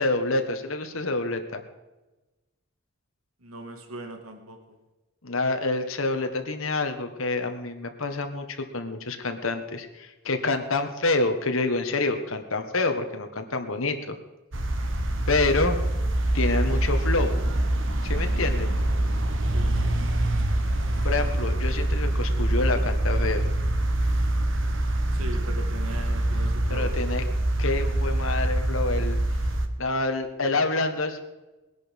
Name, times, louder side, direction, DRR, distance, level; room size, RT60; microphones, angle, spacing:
voice 1, 0.0-1.6 5.2-14.1 15.3-15.8 16.3-17.3 18.0-18.7 21.0-23.4 26.7-27.2 27.6-29.2 29.8-31.2, left 3 dB, 70° left, 6 dB, 1.6 m, -27 dB
voice 2, 3.4-4.6 19.5-20.0 25.1-27.0, right 1 dB, 85° right, 5 dB, 2.2 m, -39 dB
sound 1, 14.5-29.7, right 1 dB, 60° right, 1.5 m, -25 dB
20.0 x 11.0 x 5.4 m, 1.1 s
head